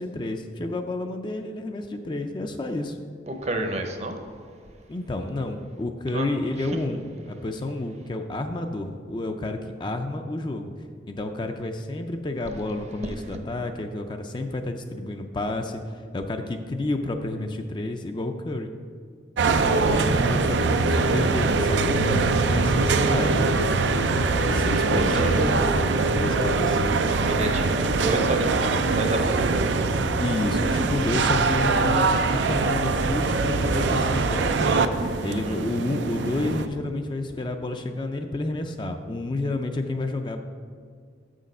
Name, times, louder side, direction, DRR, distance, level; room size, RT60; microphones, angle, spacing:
voice 1, 0.0-3.0 4.9-10.7 11.1-18.7 19.6-23.3 24.4-26.9 30.2-40.4, left 2 dB, 25° left, 5 dB, 0.4 m, -30 dB
voice 2, 3.3-4.2 6.1-6.3 6.6-7.0 24.5-25.4 27.3-30.8 35.3-35.6, right 1 dB, 40° right, 5 dB, 0.7 m, -31 dB
sound 1, 19.4-36.7, right 3 dB, 85° right, 0.5 m, -23 dB
sound 2, 19.8-26.8, left 1 dB, 80° left, 1.8 m, -33 dB
6.7 x 6.3 x 5.4 m, 2.1 s
head